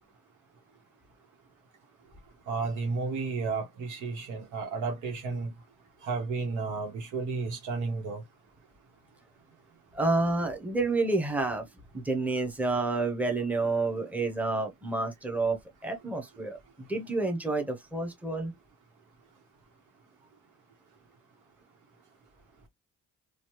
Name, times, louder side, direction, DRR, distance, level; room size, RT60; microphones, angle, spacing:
voice 1, 2.5-5.5 6.0-8.2, right 4 dB, 85° right, 1.2 m, -32 dB
voice 2, 9.9-11.7 11.9-15.6 15.8-18.5, right 3 dB, 5° right, 0.9 m, -29 dB
3.0 x 2.4 x 3.0 m
cardioid pair, 90°, 30 cm